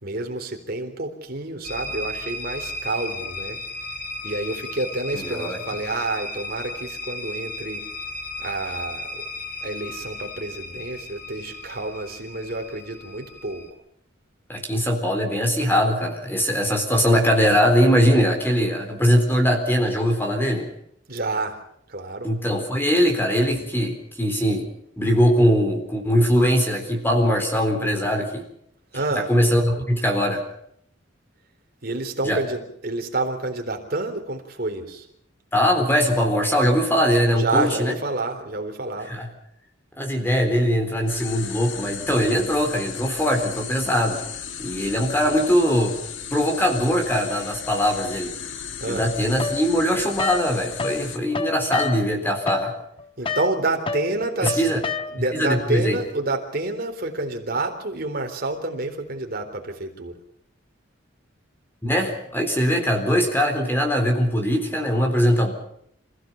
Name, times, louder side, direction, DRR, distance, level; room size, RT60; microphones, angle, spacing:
voice 1, 0.0-3.6 4.2-7.8 8.4-9.3 9.6-13.7 21.1-21.6 21.9-22.3 28.9-29.3 31.8-35.1 37.3-39.1 48.8-49.0 53.2-54.7 55.1-60.2, right 2 dB, 50° right, 4 dB, 3.8 m, -28 dB
sound 1, 1.6-13.7, left 2 dB, 50° left, 2.2 m, -35 dB
voice 2, 5.1-5.6 14.5-20.7 22.2-24.6 25.0-28.4 29.3-30.4 32.2-32.4 35.5-38.0 39.1-39.3 40.0-44.2 44.6-46.0 46.3-48.3 48.9-52.7 54.4-54.8 55.3-56.0 61.8-65.5, equal, 10° left, 3 dB, 3.9 m, -21 dB
sound 2, 41.1-51.2, left 7 dB, 80° left, 1.9 m, -36 dB
sound 3, 49.4-51.0 51.3-55.4, left 4 dB, 30° left, 1.2 m, -29 dB
26.5 x 16.0 x 7.2 m, 0.71 s
head